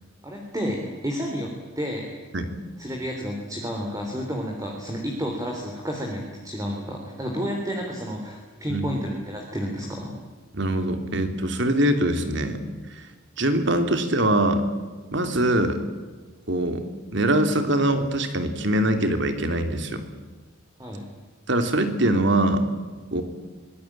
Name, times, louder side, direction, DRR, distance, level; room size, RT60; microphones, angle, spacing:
voice 1, 0.2-1.5 1.8-2.2 2.8-10.1 20.8-21.1, equal, 15° right, 0 dB, 3.6 m, -31 dB
voice 2, 10.5-12.6 12.9-13.0 13.4-14.7 15.1-15.9 16.5-16.8 17.1-20.0 21.5-22.6 23.1-23.2, right 1 dB, 60° right, 7 dB, 3.1 m, -23 dB
25.0 x 20.5 x 8.8 m, 1.4 s
head